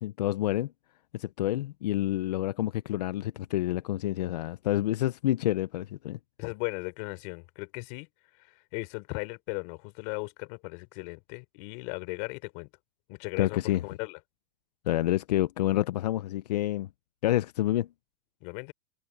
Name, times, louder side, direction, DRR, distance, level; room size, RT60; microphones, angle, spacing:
voice 1, 0.0-0.7 1.1-6.2 13.4-13.8 14.9-16.9 17.2-17.9, left 14 dB, 90° left, 0.7 m, -28 dB
voice 2, 6.4-12.7 13.1-14.2 18.4-18.7, left 32 dB, 50° left, 4.3 m, -37 dB
supercardioid pair, 145°, 20 cm